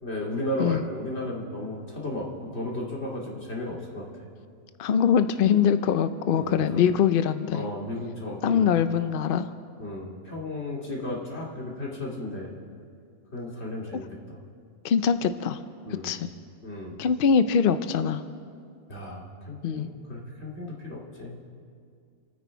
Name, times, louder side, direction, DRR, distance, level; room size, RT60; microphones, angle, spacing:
voice 1, 0.0-4.1 6.3-6.8 7.5-8.7 9.8-12.5 13.3-14.4 15.9-16.1 16.6-17.0 18.9-21.4, left 1 dB, 45° left, -3 dB, 2.7 m, -34 dB
voice 2, 4.8-7.6 8.4-9.5 14.8-15.6 16.0-16.3 17.0-18.2 19.6-19.9, left 7 dB, 65° left, 11 dB, 0.5 m, -23 dB
28.5 x 9.7 x 4.6 m, 2.3 s
omnidirectional pair, 1.6 m